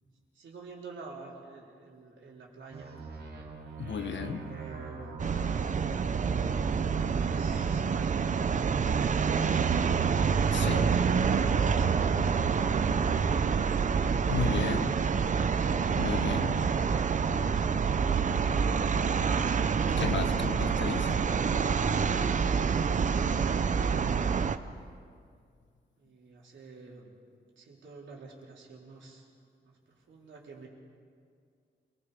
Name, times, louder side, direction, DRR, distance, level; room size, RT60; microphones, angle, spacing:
voice 1, 0.3-3.0 4.2-5.3 6.6-8.4 9.2-13.5 17.2-18.8 26.0-27.1 27.6-29.3 29.6-30.7, right 3 dB, 85° right, -2 dB, 4.2 m, -47 dB
sound 1, 2.7-7.0 7.3-13.0 13.3-17.9, right 4 dB, 60° right, 3.8 m, -43 dB
voice 2, 3.8-4.5 10.5-10.8 14.3-15.0 16.0-16.6 20.0-21.2, left 6 dB, 75° left, 8 dB, 1.3 m, -34 dB
sound 2, 5.2-24.6, right 6 dB, 40° right, 0.7 m, -27 dB
28.0 x 20.5 x 5.3 m, 2.2 s
wide cardioid pair, 170°, 19 cm